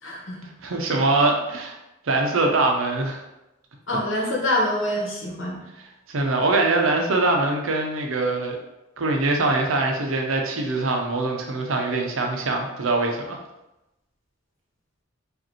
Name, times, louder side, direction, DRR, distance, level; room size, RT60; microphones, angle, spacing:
voice 1, 0.0-0.5 3.9-5.6, left 1 dB, 70° left, -3 dB, 1.2 m, -25 dB
voice 2, 0.6-1.8 2.0-3.2 6.1-8.6 9.0-13.4, right 2 dB, 85° right, 2 dB, 0.7 m, -23 dB
5.0 x 2.6 x 2.9 m, 0.94 s
head